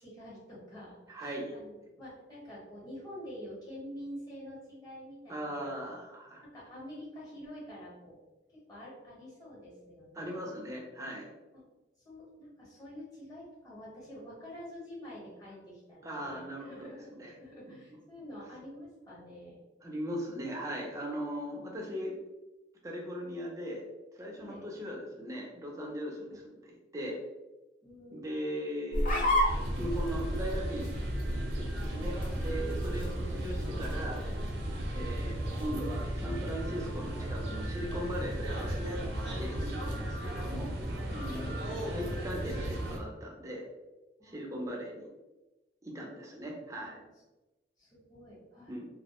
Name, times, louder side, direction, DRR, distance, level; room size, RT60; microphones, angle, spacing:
voice 1, 0.0-6.0 6.4-8.2 8.5-10.8 12.0-17.1 17.4-19.6 24.4-24.7 26.3-26.4 27.8-28.5 31.7-31.8 34.7-34.9 39.8-40.2 41.1-41.6 42.0-42.4 44.2-44.8 46.6-47.0 47.8-48.8, equal, 20° left, -7 dB, 1.0 m, -48 dB
voice 2, 1.1-1.5 5.3-6.4 10.1-11.3 16.0-16.7 17.2-17.3 17.7-17.8 19.8-22.1 22.8-23.8 24.1-26.3 26.9-27.2 28.1-29.4 29.8-30.9 31.3-34.2 34.9-40.8 41.0-43.6 44.3-45.1 45.8-47.0 48.7-48.9, equal, 20° right, -1 dB, 0.4 m, -39 dB
sound 1, 28.9-35.8, equal, 45° left, 0.5 m, -34 dB
sound 2, 29.4-43.0, right 1 dB, 70° right, 0.5 m, -35 dB
2.2 x 2.0 x 2.9 m, 1.1 s
head